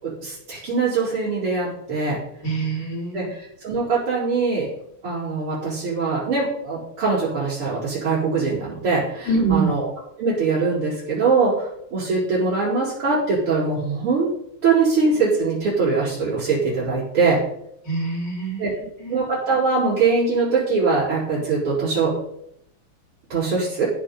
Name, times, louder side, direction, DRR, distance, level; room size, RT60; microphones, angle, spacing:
voice 1, 0.0-2.2 3.1-4.7 5.0-9.9 10.2-14.3 14.6-17.4 18.6-18.7 19.1-22.1 23.3-23.9, right 4 dB, 85° right, -10 dB, 5.8 m, -22 dB
voice 2, 2.4-3.3 9.3-9.7 17.8-19.2, right 3 dB, 55° left, -2 dB, 4.3 m, -25 dB
15.0 x 6.7 x 5.6 m, 0.73 s
omnidirectional pair, 2.3 m